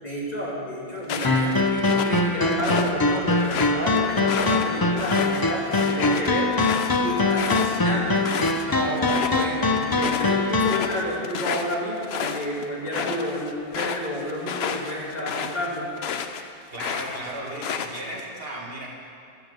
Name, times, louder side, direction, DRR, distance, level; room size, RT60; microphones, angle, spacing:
voice 1, 0.0-6.5 6.9-8.3 8.6-15.9, equal, 45° left, -5 dB, 2.5 m, -30 dB
sound 1, 1.0-2.9 3.3-8.6 9.0-9.5 9.8-16.4 16.7-18.2, left 7 dB, 85° left, 0.9 m, -31 dB
sound 2, 1.2-10.8, left 2 dB, 25° left, 0.6 m, -23 dB
voice 2, 16.7-18.9, right 1 dB, 70° right, -2 dB, 2.1 m, -35 dB
13.5 x 6.8 x 6.7 m, 2.4 s
omnidirectional pair, 1.0 m